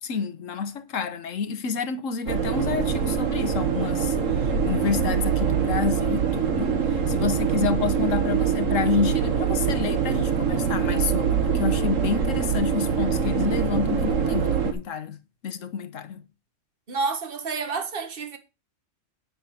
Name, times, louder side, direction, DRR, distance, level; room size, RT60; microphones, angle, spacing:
voice 1, 0.0-6.8 7.1-16.3, left 6 dB, 80° left, 1.4 m, -29 dB
sound 1, 2.3-14.7, right 7 dB, 80° right, 1.9 m, -24 dB
voice 2, 16.9-18.4, right 4 dB, 45° right, 1.6 m, -29 dB
9.8 x 6.9 x 5.7 m
omnidirectional pair, 1.3 m